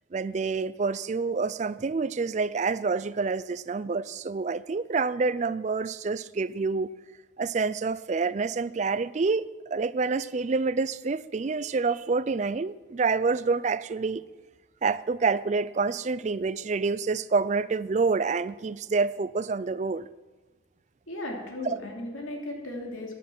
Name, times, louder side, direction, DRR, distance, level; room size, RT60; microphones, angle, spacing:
voice 1, 0.1-6.9 7.4-9.4 9.7-14.2 14.8-20.1 21.6-21.8, right 4 dB, 35° right, 16 dB, 0.3 m, -27 dB
voice 2, 21.1-23.1, left 1 dB, 85° left, 0 dB, 2.9 m, -36 dB
14.0 x 10.0 x 6.0 m, 1.2 s
head